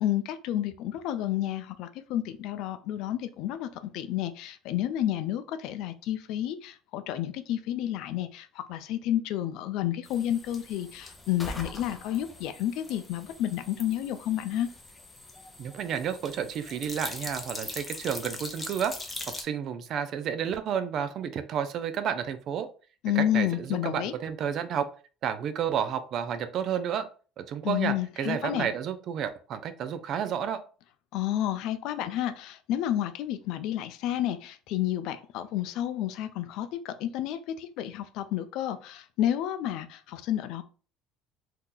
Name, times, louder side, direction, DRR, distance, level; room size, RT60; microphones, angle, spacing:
voice 1, 0.0-14.7 23.0-24.1 27.6-28.7 31.1-40.6, left 12 dB, 70° left, 10 dB, 0.4 m, -30 dB
sound 1, 10.0-19.4, left 2 dB, 15° left, 0.7 m, -42 dB
voice 2, 15.6-18.9 19.3-22.7 23.2-24.9 25.2-27.1 27.4-30.6, right 8 dB, 50° right, 11 dB, 0.4 m, -31 dB
2.8 x 2.3 x 3.7 m, 0.38 s
cardioid pair, 125°, 0 cm